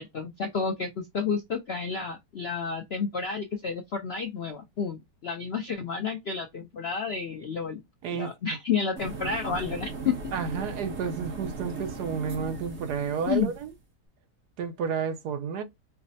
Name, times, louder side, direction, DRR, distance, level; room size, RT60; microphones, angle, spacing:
voice 1, 0.0-7.8 8.1-10.2 13.3-13.5, left 5 dB, 65° left, 0.6 m, -30 dB
voice 2, 8.0-8.4 10.3-13.7 14.6-15.6, right 6 dB, 75° right, 1.3 m, -31 dB
sound 1, 9.0-13.7, right 3 dB, 45° right, 1.3 m, -38 dB
4.9 x 2.1 x 2.6 m
omnidirectional pair, 1.8 m